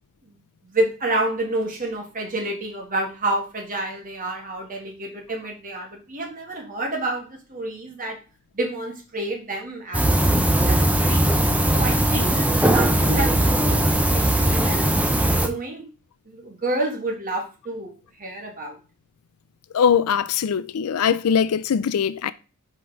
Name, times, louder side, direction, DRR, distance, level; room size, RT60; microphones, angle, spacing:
voice 1, 0.6-8.2 8.5-10.3 10.6-11.3 11.7-15.0 15.4-15.9 16.3-17.9 18.2-18.7, right 2 dB, 40° right, 1.7 m, -29 dB
sound 1, 9.9-15.5, right 1 dB, 5° right, 0.6 m, -19 dB
voice 2, 19.7-22.3, left 7 dB, 80° left, 0.4 m, -21 dB
4.8 x 4.3 x 4.5 m
head